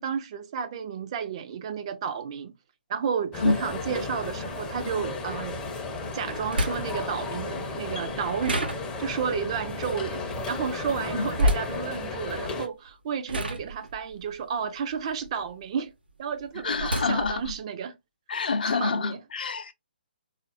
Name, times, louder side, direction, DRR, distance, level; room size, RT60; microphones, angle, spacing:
voice 1, 0.0-2.5 2.9-5.6 6.1-15.9 16.2-18.0 18.7-19.2, right 7 dB, 35° right, 0.4 m, -32 dB
sound 1, 3.3-12.7, left 3 dB, 15° left, 0.5 m, -34 dB
sound 2, 3.7-3.8 5.8-5.9 6.5-7.1 8.4-9.3 11.3-11.8 12.7-12.9 13.3-15.7 16.1-17.6, equal, 75° right, 0.8 m, -29 dB
voice 2, 16.6-17.5 18.3-19.7, left 4 dB, 60° left, 0.5 m, -27 dB
3.7 x 2.4 x 2.4 m
figure-of-eight pair, 135°, 5 cm